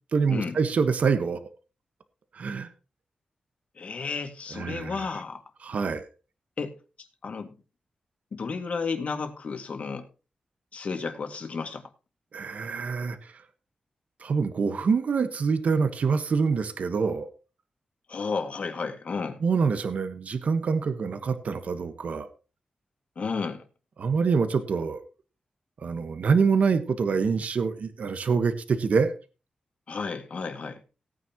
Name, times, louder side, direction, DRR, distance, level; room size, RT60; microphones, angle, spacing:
voice 1, 0.1-1.4 2.3-2.7 4.5-5.1 5.6-6.0 12.3-13.4 14.2-17.3 19.4-22.3 24.0-25.0 25.8-29.1, right 5 dB, 70° right, 9 dB, 1.3 m, -25 dB
voice 2, 3.8-5.4 6.6-6.7 7.2-7.5 8.3-10.1 10.7-11.9 18.1-19.4 23.2-23.6 29.9-30.8, left 4 dB, 60° left, 5 dB, 2.1 m, -32 dB
17.5 x 9.3 x 3.0 m, 0.33 s
wide cardioid pair, 105°, 3 cm